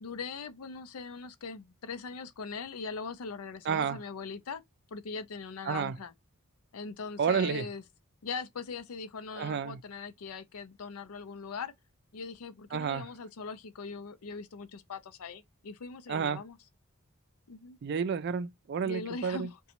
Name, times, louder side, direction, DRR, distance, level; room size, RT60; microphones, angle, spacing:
voice 1, 0.0-4.6 4.9-6.1 6.7-7.8 8.2-11.7 12.1-16.6 17.5-17.8 18.8-19.6, left 4 dB, 75° left, 0.5 m, -41 dB
voice 2, 3.7-4.0 5.7-5.9 7.2-7.7 9.4-9.8 12.7-13.0 16.1-16.4 17.8-19.5, right 6 dB, 50° right, 0.3 m, -30 dB
3.9 x 2.3 x 2.8 m
head